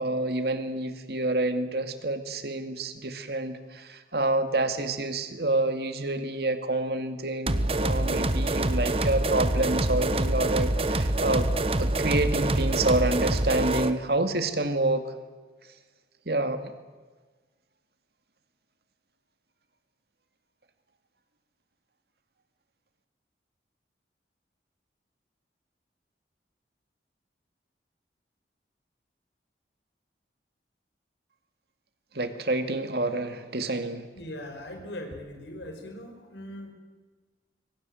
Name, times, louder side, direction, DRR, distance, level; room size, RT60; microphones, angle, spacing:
voice 1, 0.0-11.5 11.8-15.0 16.3-16.7 32.1-34.0, right 2 dB, 65° right, 8 dB, 2.3 m, -28 dB
sound 1, 7.5-14.0, right 1 dB, 35° right, 1.2 m, -26 dB
voice 2, 34.1-36.7, left 1 dB, 85° left, 4 dB, 5.1 m, -40 dB
26.0 x 24.0 x 7.8 m, 1.3 s
head